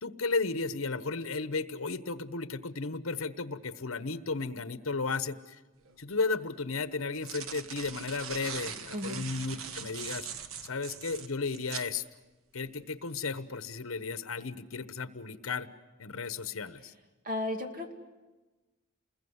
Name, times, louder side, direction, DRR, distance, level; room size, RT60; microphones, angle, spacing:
voice 1, 0.0-5.6 6.0-10.3 10.6-12.0 12.5-15.7 16.0-16.9, left 4 dB, 70° left, 13 dB, 1.1 m, -34 dB
sound 1, 5.9-6.0 6.9-11.9, right 7 dB, 75° right, 1.2 m, -41 dB
voice 2, 8.9-9.3 17.2-17.9, left 1 dB, 40° right, 5 dB, 2.5 m, -34 dB
29.0 x 21.0 x 8.1 m, 1.2 s
head